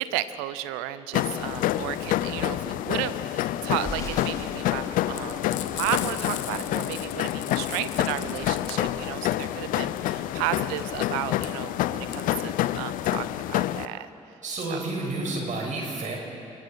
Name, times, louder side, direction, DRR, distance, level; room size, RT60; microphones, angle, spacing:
voice 1, 0.0-14.1 14.7-14.8, right 14 dB, 75° right, 14 dB, 0.8 m, -33 dB
sound 1, 1.1-13.9, left 13 dB, 65° left, 0.6 m, -28 dB
Crackle, 3.7-11.8 12.1-12.2 12.5-13.3, left 1 dB, 20° left, 5.6 m, -44 dB
Frying (food), 5.1-13.9, left 12 dB, 80° left, 1.1 m, -39 dB
voice 2, 14.4-16.2, right 2 dB, 55° right, -1 dB, 6.2 m, -30 dB
27.0 x 22.5 x 4.6 m, 2.7 s
hypercardioid pair, 45°, 15 cm